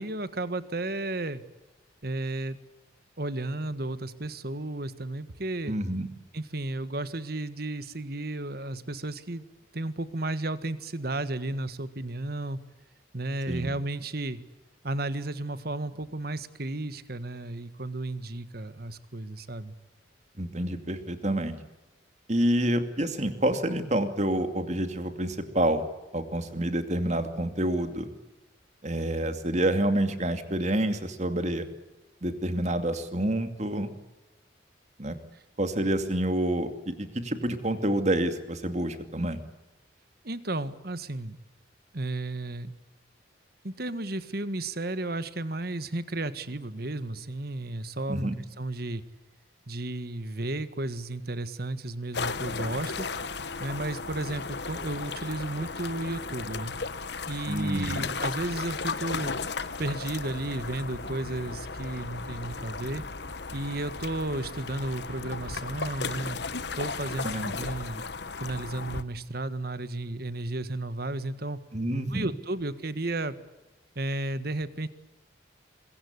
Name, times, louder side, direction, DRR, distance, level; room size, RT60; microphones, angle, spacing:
voice 1, 0.0-1.4 2.0-2.6 3.2-5.8 6.3-9.4 9.7-12.6 13.1-14.4 14.8-19.7 35.3-35.4 40.2-41.4 41.9-42.7 43.6-48.3 48.6-49.0 49.7-53.1 53.6-56.7 57.3-59.3 59.8-63.0 63.5-66.4 66.7-68.0 68.4-71.6 72.1-73.3 73.9-74.9, right 2 dB, 55° right, 13 dB, 1.6 m, -33 dB
voice 2, 5.7-6.1 13.5-13.7 20.4-21.6 22.3-25.8 26.1-28.1 28.8-31.7 32.2-33.9 35.0-35.2 35.6-39.4 48.1-48.4 57.5-58.1 67.2-67.5 71.7-72.3, right 1 dB, 35° right, 8 dB, 2.5 m, -28 dB
sound 1, 52.1-69.0, left 4 dB, 60° left, 1.2 m, -35 dB
26.0 x 22.5 x 8.3 m, 1.1 s
head